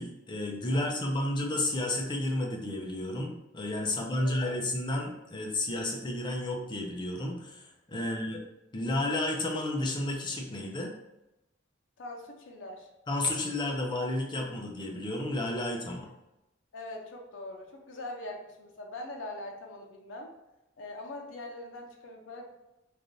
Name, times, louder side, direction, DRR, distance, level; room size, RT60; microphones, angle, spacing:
voice 1, 0.0-8.4 8.7-10.9 13.1-16.1, left 1 dB, 25° left, 0 dB, 0.5 m, -32 dB
voice 2, 0.7-1.2 3.9-4.5 8.0-8.2 12.0-12.9 16.0-16.1 16.7-20.3 20.8-22.5, left 2 dB, 85° left, 1 dB, 0.5 m, -43 dB
3.2 x 2.5 x 2.5 m, 0.93 s
head